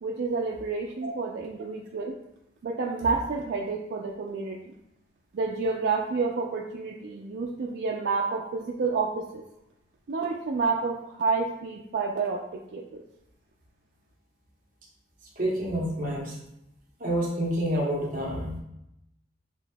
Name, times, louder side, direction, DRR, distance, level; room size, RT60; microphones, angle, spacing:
voice 1, 0.0-2.1 2.6-4.7 5.3-9.4 10.1-13.0, right 4 dB, 70° right, -1 dB, 0.4 m, -29 dB
voice 2, 15.4-16.4 17.0-18.6, equal, 50° right, -3 dB, 1.0 m, -28 dB
6.0 x 2.6 x 2.2 m, 0.84 s
head